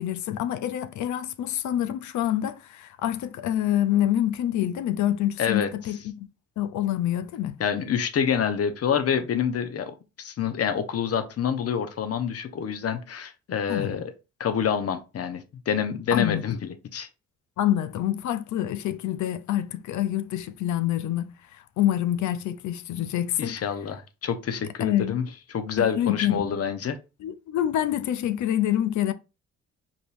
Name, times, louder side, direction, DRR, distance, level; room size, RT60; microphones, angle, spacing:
voice 1, 0.0-6.3 6.6-7.6 13.7-13.9 16.1-16.4 17.6-23.6 24.8-25.1 26.0-26.5 27.2-29.1, left 12 dB, 75° left, 0.6 m, -26 dB
voice 2, 7.6-14.1 14.4-17.1 23.4-25.2 25.5-27.0, left 7 dB, 55° left, 1.0 m, -27 dB
5.1 x 3.4 x 2.6 m
cardioid pair, 90°, 30 cm